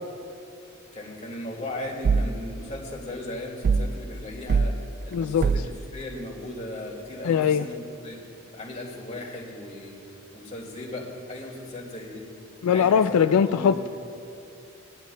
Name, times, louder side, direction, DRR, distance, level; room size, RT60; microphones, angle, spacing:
voice 1, 0.9-4.7 5.0-5.6 5.9-8.2 8.5-10.0 10.3-12.2 12.7-13.9, left 1 dB, 30° left, -2 dB, 2.1 m, -37 dB
sound 1, 2.0-2.4 3.6-4.0 4.5-4.8 5.4-5.8, right 5 dB, 45° right, 0.3 m, -22 dB
voice 2, 5.1-5.5 7.2-7.7 12.6-13.9, left 7 dB, 80° left, 10 dB, 0.3 m, -21 dB
19.0 x 11.0 x 2.3 m, 2.7 s
head